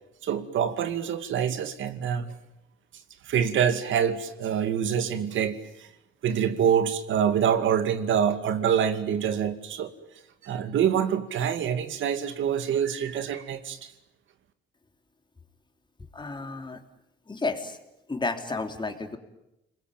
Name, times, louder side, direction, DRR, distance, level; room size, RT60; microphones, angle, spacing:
voice 1, 0.2-2.3 3.2-5.9 6.2-9.9 10.4-13.9, right 8 dB, 75° right, 9 dB, 2.4 m, -26 dB
voice 2, 16.1-16.8 17.3-17.8 18.1-19.2, left 3 dB, 25° left, 6 dB, 3.4 m, -31 dB
30.0 x 21.5 x 9.2 m, 0.89 s
cardioid pair, 90°, 20 cm